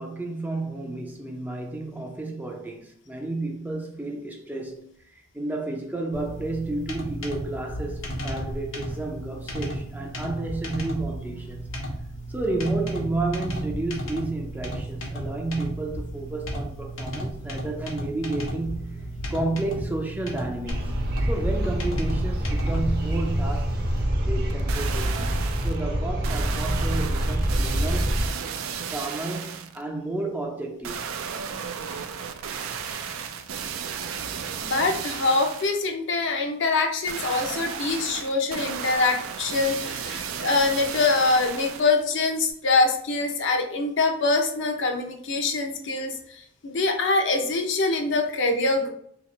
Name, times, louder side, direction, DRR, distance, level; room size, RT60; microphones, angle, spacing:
voice 1, 0.0-11.7 12.3-20.9 21.3-23.8 24.2-25.4 25.6-28.2 28.9-31.1, right 2 dB, 10° right, 0.4 m, -31 dB
sound 1, 6.1-24.0, right 1 dB, 80° left, 1.0 m, -34 dB
sound 2, 20.7-28.3, equal, 50° right, 0.7 m, -26 dB
sound 3, 24.5-25.8 26.2-29.8 30.8-35.8 37.1-42.0 42.5-42.6, right 7 dB, 75° right, 0.4 m, -34 dB
voice 2, 34.6-48.9, left 3 dB, 60° left, 0.6 m, -24 dB
2.9 x 2.8 x 4.0 m
head